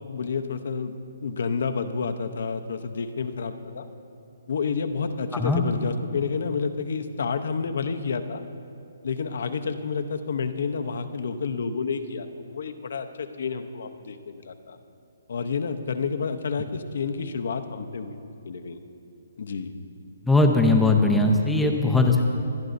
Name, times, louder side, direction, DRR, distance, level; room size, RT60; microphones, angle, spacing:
voice 1, 0.1-3.9 4.5-8.4 9.0-14.8 15.3-18.2 18.4-18.8 19.4-19.7, left 5 dB, 65° left, 8 dB, 0.7 m, -30 dB
voice 2, 20.3-22.2, left 2 dB, ahead, 1 dB, 0.7 m, -19 dB
23.5 x 11.0 x 2.6 m, 2.7 s
hypercardioid pair, 165°, 0 cm